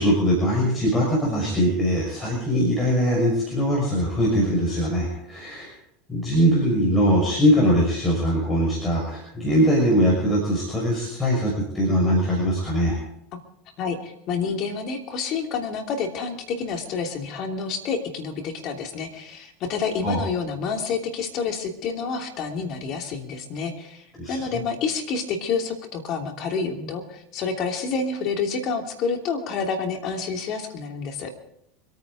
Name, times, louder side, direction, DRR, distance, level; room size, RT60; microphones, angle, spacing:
voice 1, 0.0-5.7 6.1-13.0 20.0-20.2 24.2-24.4, equal, 20° left, -3 dB, 5.9 m, -21 dB
voice 2, 13.8-31.3, left 5 dB, 50° left, 4 dB, 3.0 m, -28 dB
25.5 x 9.4 x 5.0 m, 0.75 s
hypercardioid pair, 85°, 0 cm